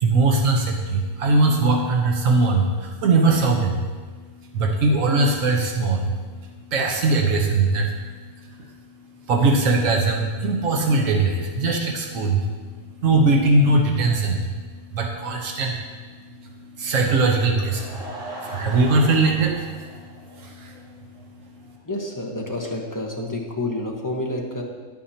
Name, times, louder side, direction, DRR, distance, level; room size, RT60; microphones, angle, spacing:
voice 1, 0.0-3.8 4.5-6.1 6.7-7.9 8.6-8.7 9.3-12.5 13.0-14.5 14.9-15.8 16.8-18.0 18.5-19.6 20.3-20.7, right 3 dB, 85° right, 1 dB, 1.3 m, -20 dB
Laughter / Crowd, 17.6-20.8 21.2-21.3 21.8-21.9 22.1-22.2, right 1 dB, 70° right, 2.4 m, -38 dB
voice 2, 21.8-24.6, left 1 dB, 15° left, -2 dB, 1.0 m, -29 dB
11.0 x 8.9 x 2.8 m, 1.4 s
omnidirectional pair, 1.3 m